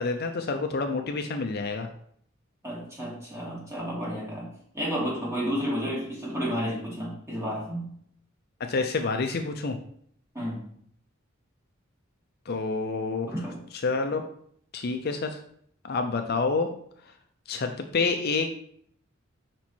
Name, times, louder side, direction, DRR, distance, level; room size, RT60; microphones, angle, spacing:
voice 1, 0.0-1.9 8.6-9.8 12.5-13.3 13.8-14.2 14.7-15.4 15.8-16.7 17.5-18.5, left 4 dB, 50° left, 5 dB, 0.5 m, -28 dB
voice 2, 2.6-8.0 10.3-10.6 13.2-13.6, equal, 15° right, -6 dB, 2.4 m, -31 dB
5.2 x 4.4 x 4.4 m, 0.63 s
head